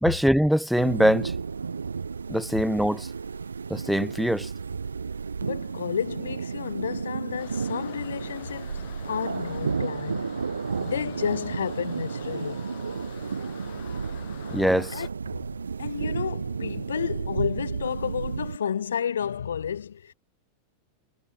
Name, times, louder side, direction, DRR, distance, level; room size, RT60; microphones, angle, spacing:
voice 1, 0.0-1.3 2.3-3.1 3.7-4.5 14.5-15.0, equal, ahead, 0.8 m, -23 dB
sound 1, 0.7-18.6, right 5 dB, 75° right, 0.8 m, -32 dB
voice 2, 5.4-10.4 10.7-12.6 14.9-15.5 15.8-20.1, left 8 dB, 65° left, 0.7 m, -31 dB
sound 2, 7.4-15.1, left 19 dB, 50° left, 4.7 m, -46 dB
figure-of-eight pair, 90°, 0 cm